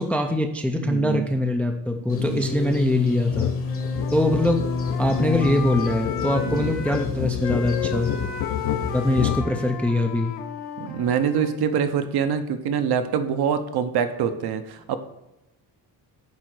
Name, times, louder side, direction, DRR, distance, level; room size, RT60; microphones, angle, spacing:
voice 1, 0.0-3.5 4.1-4.7 5.0-8.1 8.9-10.3, left 1 dB, 5° left, 4 dB, 0.4 m, -23 dB
voice 2, 0.8-1.3 2.1-2.4 6.4-6.7 10.8-15.0, right 7 dB, 60° right, 9 dB, 0.8 m, -25 dB
sound 1, 2.1-9.4, left 5 dB, 30° left, 0.9 m, -29 dB
sound 2, 3.3-3.6 3.8-9.5, left 10 dB, 50° left, 0.6 m, -30 dB
Wind instrument woodwind instrument, 3.6-7.1 7.4-11.6, left 8 dB, 70° left, 1.1 m, -34 dB
9.5 x 3.8 x 6.2 m, 0.94 s
cardioid pair, 180°, 43 cm